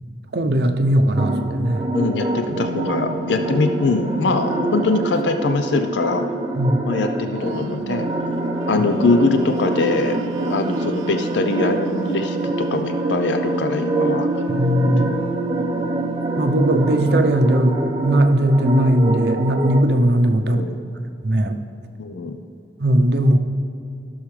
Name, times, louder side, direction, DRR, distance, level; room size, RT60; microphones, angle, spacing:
voice 1, 0.3-1.9 6.6-6.8 14.5-15.0 16.4-20.6 21.2-21.6 22.8-23.4, right 1 dB, 60° right, 7 dB, 0.6 m, -18 dB
sound 1, 1.2-19.8, right 1 dB, 20° right, 0.6 m, -26 dB
voice 2, 1.9-6.2 6.8-8.1 8.7-14.3 14.8-15.3 20.4-20.8 22.0-22.4, left 3 dB, 70° left, 7 dB, 0.5 m, -22 dB
sound 2, 2.5-5.4 7.0-17.3, right 6 dB, 85° right, 0.3 m, -32 dB
15.5 x 6.3 x 3.2 m, 2.7 s
head